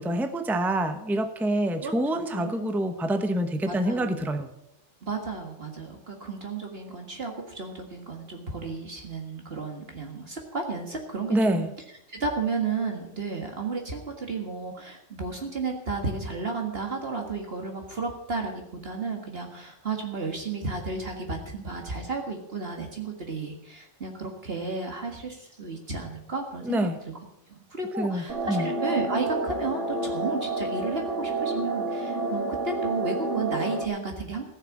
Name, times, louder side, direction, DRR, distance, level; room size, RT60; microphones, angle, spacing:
voice 1, 0.0-4.5 11.3-11.7 26.6-27.0 28.0-28.7, right 1 dB, ahead, 8 dB, 0.8 m, -26 dB
voice 2, 1.8-2.7 3.7-4.2 5.0-11.7 12.1-26.9 27.5-34.4, right 3 dB, 55° right, 2 dB, 2.0 m, -33 dB
sound 1, 28.3-33.9, right 2 dB, 75° right, 2.0 m, -29 dB
15.5 x 6.6 x 8.7 m, 0.82 s
omnidirectional pair, 1.2 m